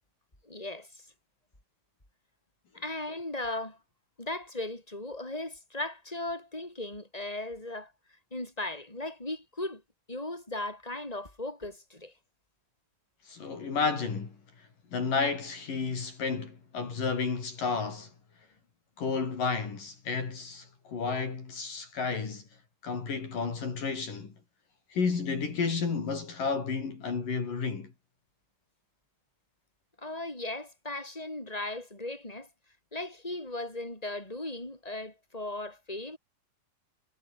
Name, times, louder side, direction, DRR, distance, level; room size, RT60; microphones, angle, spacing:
voice 1, 0.4-1.0 2.7-3.8 4.2-7.9 8.3-9.8 10.1-12.1 30.0-32.5 32.9-36.2, left 2 dB, 10° left, 7.8 m, -37 dB
voice 2, 13.3-14.4 14.9-18.1 19.0-22.4 22.8-24.3 24.9-27.9, left 5 dB, 65° left, 6.2 m, -31 dB
omnidirectional pair, 4.2 m